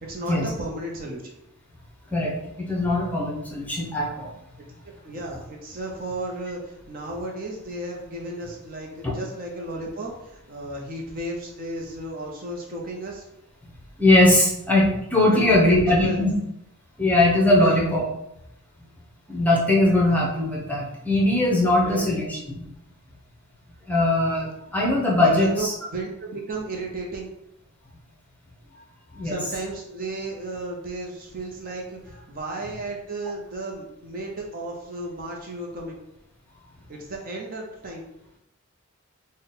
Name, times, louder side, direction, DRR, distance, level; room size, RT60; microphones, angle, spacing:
voice 1, 0.0-1.2 5.0-13.3 15.3-16.3 17.6-17.8 21.8-22.1 25.2-27.3 29.2-36.0 36.9-38.0, right 2 dB, 40° right, 0 dB, 0.6 m, -33 dB
voice 2, 2.1-4.3 14.0-16.3 17.0-18.0 19.3-22.6 23.9-25.7 29.1-29.4, left 1 dB, 5° left, -4 dB, 0.7 m, -20 dB
3.8 x 2.1 x 3.9 m, 0.81 s
head